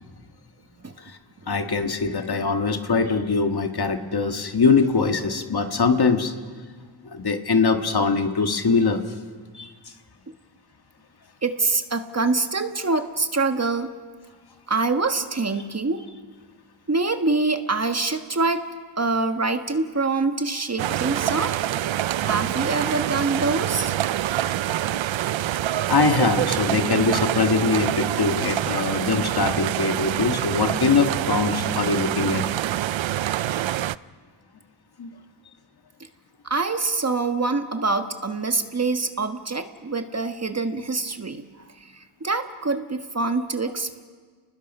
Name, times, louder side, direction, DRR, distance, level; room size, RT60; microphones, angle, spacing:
voice 1, 1.5-6.3 7.0-9.0 9.5-9.7 24.9-25.0 25.5-25.6 25.9-32.5 35.0-35.1, left 4 dB, 55° left, 6 dB, 1.7 m, -22 dB
voice 2, 11.4-13.9 14.7-16.0 16.9-18.6 19.0-21.6 22.2-24.1 36.4-44.0, right 3 dB, 35° right, 7 dB, 1.4 m, -25 dB
sound 1, 20.8-34.0, right 12 dB, 75° right, 0.6 m, -26 dB
30.0 x 20.0 x 5.5 m, 1.5 s
cardioid pair, 60°, 47 cm